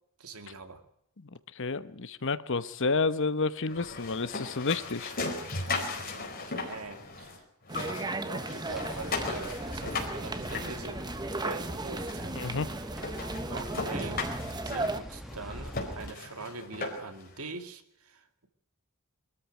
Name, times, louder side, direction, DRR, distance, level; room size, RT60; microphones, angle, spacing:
voice 1, 0.2-0.8 6.0-7.4 7.7-12.4 13.5-14.3 14.6-18.5, right 3 dB, 80° right, 8 dB, 2.3 m, -43 dB
voice 2, 1.6-5.1 12.3-12.7, left 4 dB, 60° left, 14 dB, 1.0 m, -30 dB
sound 1, 3.7-7.4 7.6-11.4 12.1-12.2 12.6-12.7 13.0-17.2, left 3 dB, 45° left, 4.6 m, -37 dB
sound 2, 7.7-15.0, right 2 dB, 20° right, 1.2 m, -36 dB
sound 3, 8.7-16.1, equal, ahead, 1.2 m, -43 dB
23.5 x 13.5 x 9.2 m, 0.74 s
head